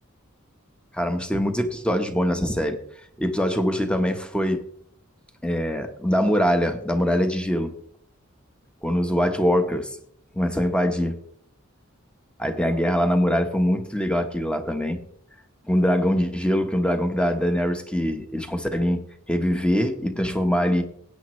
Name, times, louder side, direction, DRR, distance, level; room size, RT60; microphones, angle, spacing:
voice 1, 0.9-2.8 3.2-4.7 5.4-7.7 8.8-9.9 10.4-11.2 12.4-15.0 15.7-19.0 19.3-20.8, equal, 5° left, 6 dB, 1.1 m, -23 dB
17.0 x 9.3 x 3.2 m, 0.62 s
head